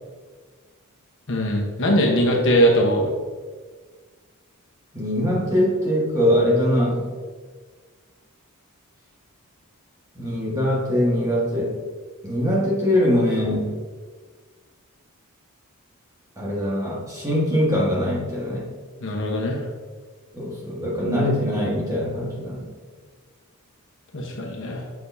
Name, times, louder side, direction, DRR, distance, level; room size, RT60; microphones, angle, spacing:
voice 1, 1.3-3.1 19.0-19.6 24.1-24.8, equal, 55° left, -1 dB, 1.2 m, -21 dB
voice 2, 4.9-7.0 10.1-11.7 12.2-13.7 16.4-18.6 20.3-22.6, equal, 15° right, -5 dB, 1.7 m, -22 dB
6.8 x 6.1 x 2.8 m, 1.5 s
head